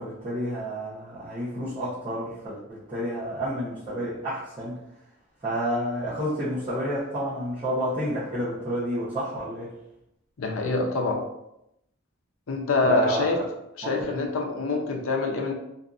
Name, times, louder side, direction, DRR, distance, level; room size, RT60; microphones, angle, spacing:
voice 1, 0.0-4.8 5.4-9.7 12.8-13.4 13.8-14.2, equal, 25° right, -12 dB, 0.8 m, -30 dB
voice 2, 10.4-11.2 12.5-13.4 13.9-15.5, left 3 dB, 70° left, 2 dB, 0.5 m, -25 dB
2.6 x 2.5 x 2.4 m, 0.83 s
head